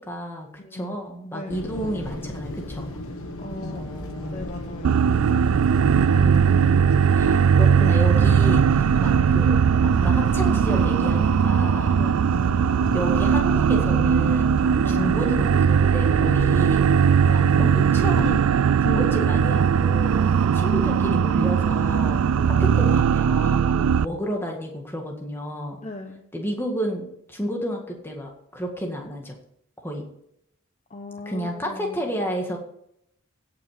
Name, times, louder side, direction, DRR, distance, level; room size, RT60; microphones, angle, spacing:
voice 1, 0.0-2.9 3.7-4.5 5.8-9.6 10.0-12.0 12.9-16.9 17.3-18.4 18.8-20.3 20.5-25.8 26.3-29.4 29.8-30.0 31.3-32.6, equal, 10° left, 1 dB, 1.8 m, -31 dB
voice 2, 0.6-1.0 1.3-1.6 3.4-3.8 4.3-5.0 11.9-12.1 14.7-15.2 17.2-17.5 20.4-20.6 22.3-22.6 23.7-24.0 25.8-26.2 30.9-32.1, left 2 dB, 35° left, 4 dB, 0.8 m, -39 dB
sound 1, 1.5-18.4, left 1 dB, 85° left, 1.2 m, -34 dB
sound 2, 4.8-24.0, right 7 dB, 85° right, 0.3 m, -19 dB
16.5 x 6.0 x 5.1 m, 0.74 s
head